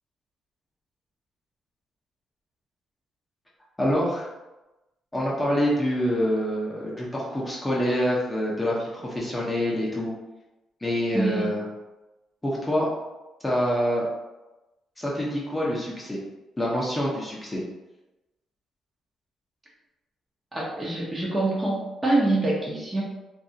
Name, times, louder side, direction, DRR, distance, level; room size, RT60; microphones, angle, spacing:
voice 1, 3.8-4.3 5.1-10.1 10.8-11.7 12.4-12.9 13.4-14.1 15.0-16.2 16.6-17.6, equal, 10° left, -5 dB, 0.7 m, -26 dB
voice 2, 11.1-11.5 20.5-23.0, right 2 dB, 20° right, -4 dB, 0.8 m, -25 dB
2.6 x 2.4 x 2.7 m, 1.0 s
cardioid pair, 90°, 0 cm